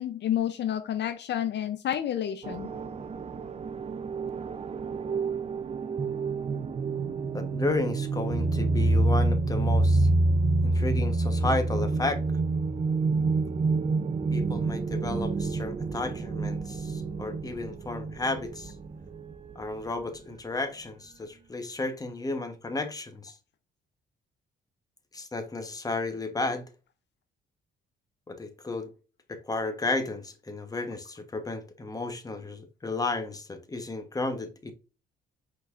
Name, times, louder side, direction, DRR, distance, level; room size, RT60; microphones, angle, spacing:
voice 1, 0.0-2.7, left 10 dB, 60° left, 0.5 m, -30 dB
sound 1, 2.4-19.6, right 3 dB, 30° right, 0.5 m, -28 dB
voice 2, 7.3-10.1 10.6-12.2 14.3-18.7 19.5-23.3 25.1-26.6 28.3-28.9 29.3-34.7, left 2 dB, 20° left, 1.0 m, -33 dB
5.5 x 4.0 x 2.4 m
cardioid pair, 90°, 20 cm